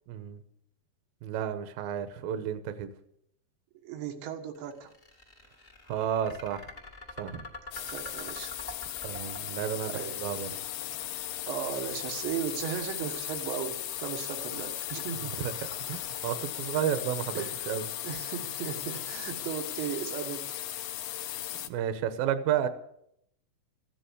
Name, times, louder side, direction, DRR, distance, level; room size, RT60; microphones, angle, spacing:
voice 1, 0.1-0.4 1.2-2.9 5.9-6.7 7.2-7.5 9.0-9.9 10.2-10.5 15.1-15.5 15.9-17.9 21.6-22.7, right 9 dB, 70° right, 10 dB, 2.4 m, -32 dB
voice 2, 3.8-4.9 7.9-8.6 9.9-10.2 11.5-15.4 17.4-17.6 18.0-20.6, right 8 dB, 85° right, 3 dB, 3.8 m, -36 dB
sound 1, 4.5-20.7, left 2 dB, 30° left, 0.9 m, -48 dB
sound 2, 7.7-21.7, left 13 dB, 75° left, 2.1 m, -37 dB
15.0 x 10.0 x 8.2 m, 0.75 s
omnidirectional pair, 5.0 m